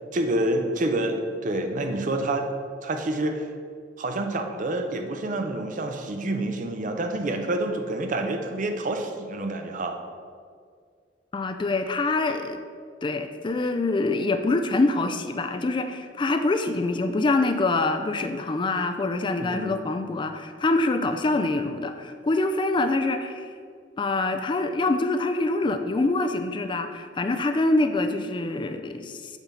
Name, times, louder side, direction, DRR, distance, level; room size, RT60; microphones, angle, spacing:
voice 1, 0.1-2.4 2.8-3.4 4.0-10.0 19.4-19.8, right 1 dB, 45° right, 5 dB, 0.6 m, -28 dB
voice 2, 11.3-12.6 13.0-23.5 24.0-29.4, left 2 dB, 25° left, 7 dB, 0.3 m, -25 dB
7.2 x 3.9 x 5.5 m, 2.1 s
head